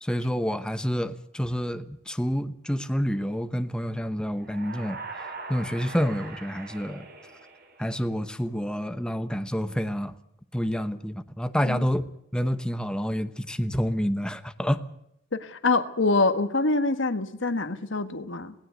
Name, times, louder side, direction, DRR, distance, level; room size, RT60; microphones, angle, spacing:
voice 1, 0.0-7.0 7.8-10.2 10.5-14.8, equal, 5° left, 10 dB, 0.9 m, -28 dB
sound 1, 4.4-8.2, right 4 dB, 50° right, 5.4 m, -42 dB
voice 2, 15.3-18.5, left 3 dB, 65° left, 10 dB, 1.5 m, -25 dB
18.5 x 18.0 x 7.9 m, 0.76 s
head